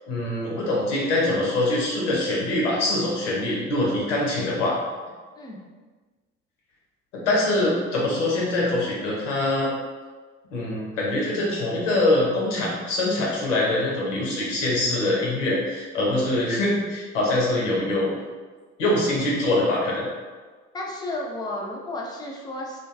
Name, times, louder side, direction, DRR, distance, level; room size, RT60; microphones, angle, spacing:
voice 1, 0.1-4.8 7.1-9.7 10.5-18.2 18.8-20.1, left 1 dB, 80° left, -4 dB, 0.7 m, -24 dB
voice 2, 20.7-22.8, left 1 dB, 10° left, -2 dB, 0.4 m, -32 dB
2.4 x 2.2 x 2.3 m, 1.4 s
figure-of-eight pair, 55°, 36 cm